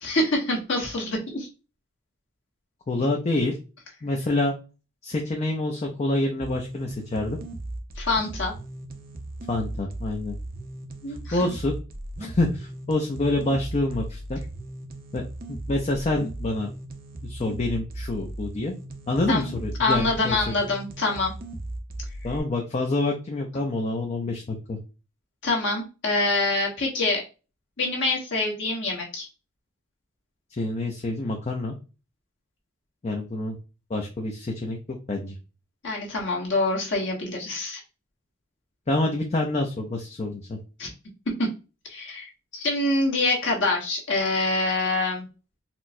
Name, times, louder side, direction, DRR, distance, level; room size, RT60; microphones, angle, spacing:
voice 1, 0.0-1.5 8.0-8.5 11.0-11.4 19.3-19.5 19.8-21.3 25.4-27.2 27.8-29.3 35.8-37.8 40.8-40.9 41.4-41.5 41.9-45.3, left 2 dB, 60° left, -2 dB, 1.2 m, -25 dB
voice 2, 2.9-3.6 4.0-4.5 5.0-7.4 9.5-10.3 11.3-11.7 12.2-14.4 15.1-15.2 15.5-16.7 17.2-18.7 19.1-20.4 22.2-24.8 30.6-31.7 33.0-33.6 33.9-34.8 35.1-35.4 38.9-40.6, left 2 dB, 30° left, 1 dB, 0.5 m, -27 dB
sound 1, 6.4-22.4, right 1 dB, 45° right, 0.6 m, -37 dB
4.3 x 2.1 x 2.6 m, 0.31 s
head